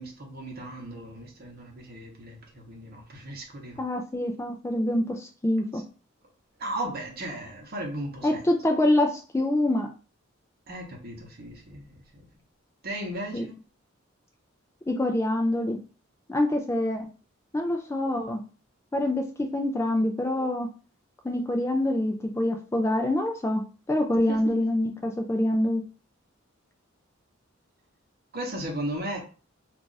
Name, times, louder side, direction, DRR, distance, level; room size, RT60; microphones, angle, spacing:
voice 1, 0.0-3.8 5.7-5.8 6.6-8.4 10.7-12.3 12.8-13.5 24.3-24.6 28.3-29.2, right 1 dB, 50° right, 1 dB, 0.9 m, -36 dB
voice 2, 3.8-5.8 8.2-9.9 13.3-13.5 14.9-15.8 16.3-17.1 17.5-18.4 18.9-20.7 21.2-25.8, left 1 dB, 15° left, 4 dB, 0.3 m, -25 dB
2.4 x 2.4 x 3.9 m, 0.36 s
head